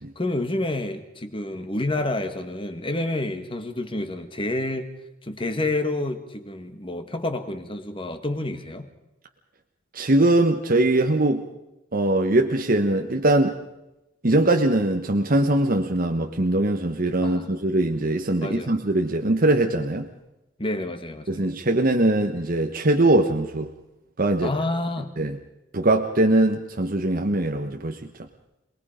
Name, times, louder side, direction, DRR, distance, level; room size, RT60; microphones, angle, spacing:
voice 1, 0.2-4.9 5.2-8.9 17.2-17.6 18.4-18.7 20.6-21.5 24.4-25.2, left 2 dB, 25° left, 7 dB, 1.9 m, -29 dB
voice 2, 9.9-11.5 11.9-13.6 14.2-20.1 21.3-23.7 24.2-24.5 25.2-25.4 25.7-28.0, right 1 dB, 45° right, 4 dB, 1.1 m, -21 dB
27.0 x 20.5 x 5.1 m, 0.92 s
head